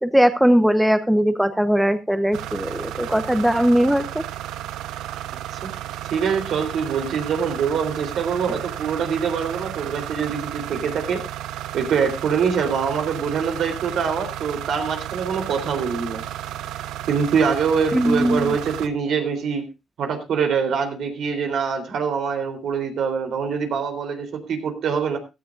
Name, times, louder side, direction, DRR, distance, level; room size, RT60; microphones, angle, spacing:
voice 1, 0.0-4.2 17.9-18.5, equal, 5° right, 10 dB, 1.1 m, -19 dB
sound 1, 2.3-18.9, right 12 dB, 90° right, 0.7 m, -33 dB
voice 2, 6.1-11.2 11.7-16.2 17.1-19.7 20.0-25.2, right 6 dB, 70° right, 7 dB, 3.6 m, -24 dB
16.5 x 13.5 x 2.6 m, 0.26 s
cardioid pair, 90°, 0 cm